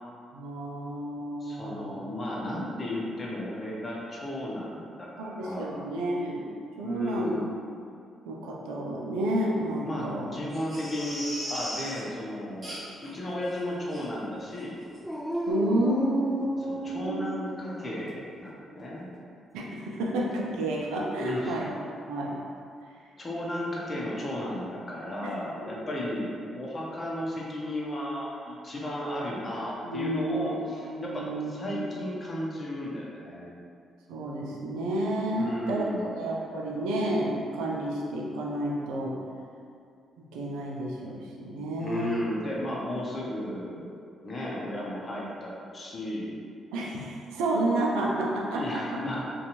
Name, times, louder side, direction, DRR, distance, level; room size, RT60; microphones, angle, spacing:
voice 1, 0.3-2.0 5.2-6.5 6.8-7.4 8.3-10.3 15.5-17.2 19.5-21.7 22.1-22.4 25.2-25.3 29.8-30.5 30.8-31.9 34.1-39.1 40.3-42.2 46.7-48.8, right 1 dB, 85° right, -3 dB, 0.4 m, -30 dB
voice 2, 1.4-5.8 6.8-7.5 9.8-14.7 16.7-19.1 21.2-21.6 23.2-33.5 35.3-36.0 41.8-46.4 48.5-49.2, left 1 dB, 35° left, -4 dB, 0.7 m, -34 dB
Crying sobbing, 10.5-12.0 12.6-13.1 13.5-13.6 13.9-14.0 14.5-14.7 14.9-15.0, equal, 25° right, 1.0 m, -38 dB
Dog, 15.0-16.9 17.6-18.4 20.6-21.5, left 1 dB, 5° left, 0.3 m, -36 dB
2.6 x 2.3 x 2.9 m, 2.4 s
supercardioid pair, 55°, 0 cm